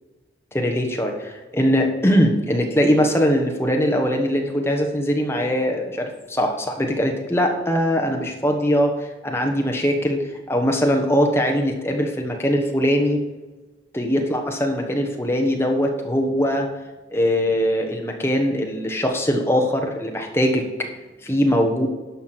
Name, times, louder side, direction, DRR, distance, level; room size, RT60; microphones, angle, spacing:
voice 1, 0.5-8.9 9.2-13.2 13.9-16.7 17.1-20.7 21.2-21.9, equal, 15° left, 2 dB, 1.2 m, -21 dB
11.5 x 5.9 x 6.0 m, 1.2 s
head